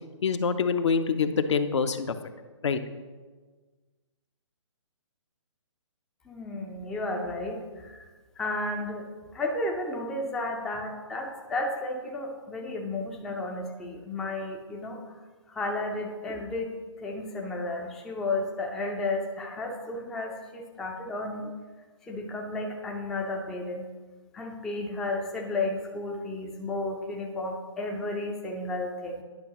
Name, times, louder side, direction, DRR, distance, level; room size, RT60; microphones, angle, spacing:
voice 1, 0.2-2.2 2.6-2.8, left 5 dB, 65° left, 10 dB, 0.6 m, -25 dB
voice 2, 6.3-8.1 8.4-9.1 9.3-15.0 15.5-21.5 22.1-23.9 24.3-29.2, left 2 dB, 5° left, 0 dB, 0.3 m, -33 dB
10.5 x 5.7 x 3.0 m, 1.4 s
hypercardioid pair, 145°, 16 cm